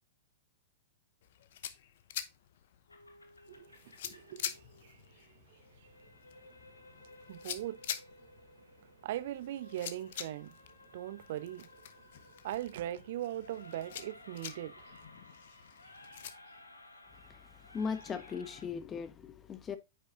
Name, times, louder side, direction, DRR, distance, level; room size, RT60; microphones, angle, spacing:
sound 1, 1.2-16.3, left 10 dB, 55° left, 0.8 m, -47 dB
sound 2, 2.9-18.7, left 2 dB, 85° left, 1.5 m, -57 dB
voice 1, 3.5-5.3 5.8-5.9 7.3-8.0 9.0-10.6 10.9-11.7 12.4-14.9 16.1-16.2, right 13 dB, 55° right, 0.8 m, -40 dB
voice 2, 17.3-19.8, left 6 dB, 20° left, 1.1 m, -39 dB
9.2 x 6.6 x 2.5 m
figure-of-eight pair, 105°, 0 cm